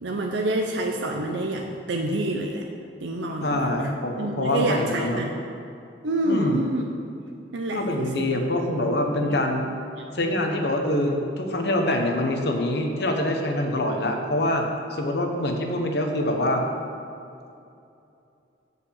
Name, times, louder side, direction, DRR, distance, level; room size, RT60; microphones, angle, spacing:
voice 1, 0.0-2.6 3.0-5.3 6.0-6.9 7.5-8.3 8.7-9.4, right 1 dB, 80° right, 2 dB, 0.6 m, -28 dB
voice 2, 3.4-5.2 6.2-6.6 7.7-9.7 10.1-16.6, left 1 dB, 60° left, 3 dB, 1.0 m, -25 dB
6.9 x 4.9 x 7.1 m, 2.6 s
head